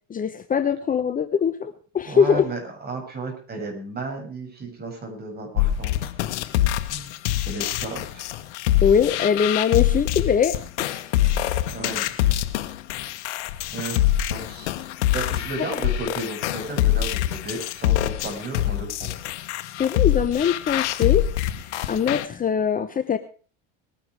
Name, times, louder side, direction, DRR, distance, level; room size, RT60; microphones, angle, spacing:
voice 1, 0.1-2.5 8.8-11.0 19.8-21.2 21.9-23.2, left 7 dB, 25° left, 10 dB, 1.0 m, -22 dB
voice 2, 2.0-6.2 6.9-7.1 7.5-8.3 11.7-12.1 13.7-14.7 15.0-19.1, right 2 dB, 30° right, 3 dB, 7.3 m, -34 dB
sound 1, 5.6-22.3, left 13 dB, 80° left, 1.4 m, -24 dB
21.0 x 10.5 x 4.8 m, 0.41 s
supercardioid pair, 105°, 34 cm